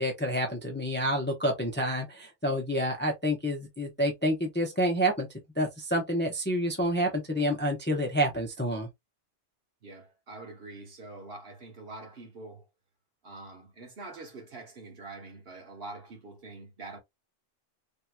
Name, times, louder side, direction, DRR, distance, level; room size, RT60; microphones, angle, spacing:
voice 1, 0.0-5.3 5.6-8.9, equal, 10° left, 0.6 m, -28 dB
voice 2, 9.8-12.7 13.2-17.0, right 2 dB, 55° right, 1.3 m, -45 dB
3.6 x 2.9 x 2.2 m
omnidirectional pair, 1.2 m